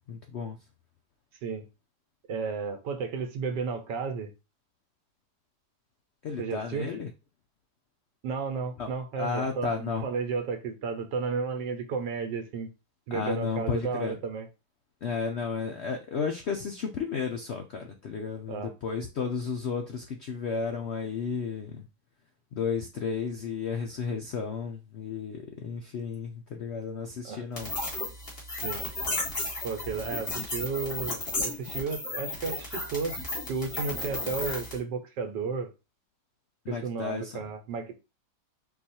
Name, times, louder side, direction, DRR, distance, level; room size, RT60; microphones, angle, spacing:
voice 1, 0.1-0.6 6.2-7.1 8.8-8.9 9.2-10.1 13.1-14.2 15.0-21.9 22.5-27.7 36.6-37.4, left 5 dB, 75° left, 0.6 m, -33 dB
voice 2, 2.3-4.3 6.4-6.9 8.2-12.7 13.1-14.5 18.5-18.7 27.2-27.4 28.6-28.8 29.6-33.2 33.5-35.7 36.7-38.0, right 5 dB, 85° right, 1.5 m, -33 dB
sound 1, 27.6-34.8, left 2 dB, 35° left, 1.9 m, -34 dB
4.6 x 2.4 x 4.2 m
omnidirectional pair, 1.8 m